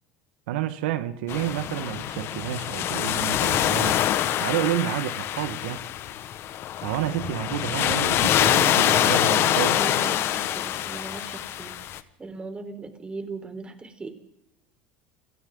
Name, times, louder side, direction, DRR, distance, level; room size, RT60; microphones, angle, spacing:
voice 1, 0.5-4.0 4.4-5.8 6.8-9.8, right 12 dB, 80° right, 1.5 m, -29 dB
sound 1, 1.3-12.0, left 12 dB, 50° left, 1.5 m, -25 dB
voice 2, 8.8-14.1, right 3 dB, 20° right, 4.2 m, -38 dB
29.5 x 22.5 x 3.9 m
supercardioid pair, 100°, 5 cm